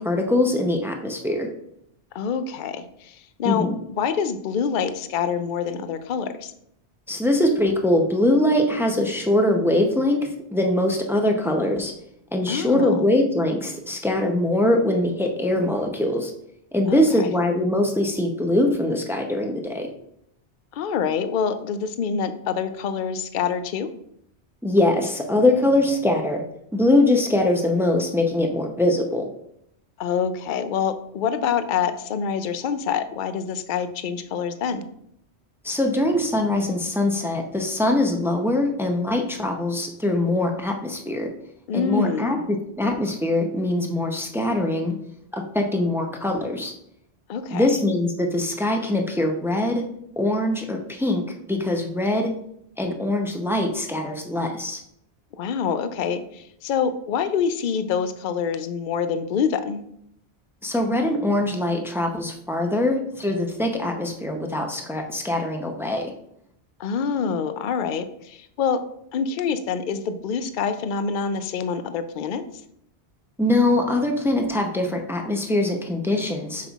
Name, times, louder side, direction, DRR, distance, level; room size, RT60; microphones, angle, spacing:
voice 1, 0.0-1.5 3.4-3.8 7.1-11.9 12.3-16.3 16.7-19.9 24.6-26.4 26.7-29.2 35.6-41.3 41.7-45.0 45.3-46.7 47.5-49.8 50.2-51.2 51.5-52.3 52.8-54.8 60.6-66.1 73.4-76.7, left 1 dB, 5° right, 3 dB, 0.4 m, -22 dB
voice 2, 2.1-3.7 4.0-6.5 12.5-13.0 16.9-17.3 20.7-23.9 30.0-34.9 41.7-42.4 47.3-47.7 55.4-59.8 66.8-68.8 69.1-72.4, left 6 dB, 60° left, 10 dB, 0.6 m, -26 dB
7.5 x 5.5 x 2.4 m, 0.74 s
omnidirectional pair, 1.1 m